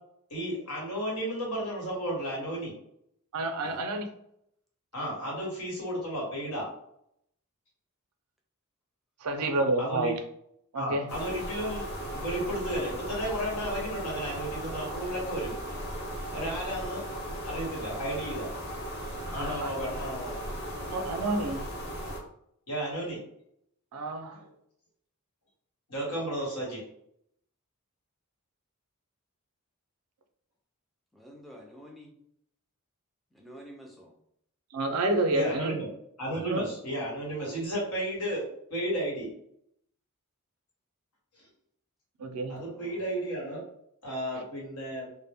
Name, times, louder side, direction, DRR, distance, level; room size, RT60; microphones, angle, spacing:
voice 1, 0.3-2.7 4.9-6.7 9.8-10.1 10.7-11.8 12.1-15.5 16.3-17.0 17.4-18.5 19.3-20.3 22.7-23.2 24.3-24.4 25.9-26.8 35.3-35.9 36.2-38.4 38.7-39.3 42.5-43.7 44.0-45.1, right 1 dB, 85° left, -4 dB, 1.2 m, -33 dB
voice 2, 3.3-4.0 9.2-10.2 10.7-11.1 19.2-19.7 20.8-21.6 23.9-24.4 34.7-35.7 36.4-36.6 42.2-42.6 44.3-44.4, right 2 dB, 75° right, 6 dB, 0.4 m, -29 dB
sound 1, 11.1-22.2, equal, 50° left, 0.7 m, -37 dB
voice 3, 31.1-32.1 33.3-34.2 42.6-43.1, equal, ahead, 0 dB, 0.3 m, -49 dB
2.0 x 2.0 x 3.4 m, 0.72 s
head